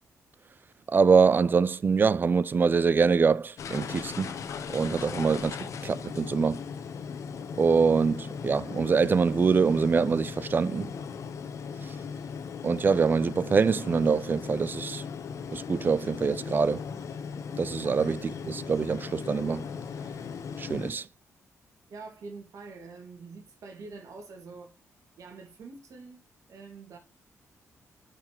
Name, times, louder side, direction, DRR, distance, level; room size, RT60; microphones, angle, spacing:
voice 1, 0.9-4.3 4.7-5.6 5.8-6.6 7.6-10.9 12.6-15.0 15.5-16.8 17.6-18.2 18.4-19.6 20.6-21.0, right 5 dB, 35° right, 0.4 m, -24 dB
sound 1, 3.6-20.9, left 6 dB, 65° left, 1.0 m, -38 dB
voice 2, 21.9-24.8 25.2-26.2 26.5-27.0, right 4 dB, 70° right, 2.3 m, -45 dB
6.6 x 5.8 x 3.1 m
cardioid pair, 90°, 6 cm